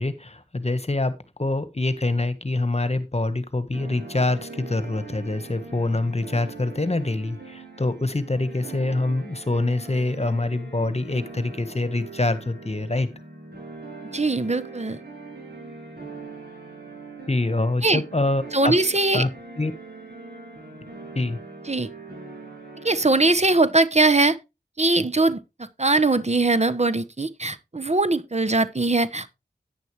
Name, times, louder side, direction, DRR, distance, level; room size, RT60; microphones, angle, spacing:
voice 1, 0.0-13.1 17.3-18.7 19.1-19.3 19.6-19.7 21.1-21.4, left 2 dB, 40° left, 1.4 m, -25 dB
sound 1, 3.7-23.3, right 3 dB, 70° right, 7.5 m, -41 dB
voice 2, 14.1-15.0 17.8-18.0 18.5-19.2 21.7-21.9 22.8-24.4 24.8-29.3, right 2 dB, 40° right, 0.9 m, -21 dB
10.5 x 9.6 x 3.2 m
wide cardioid pair, 40°, 17 cm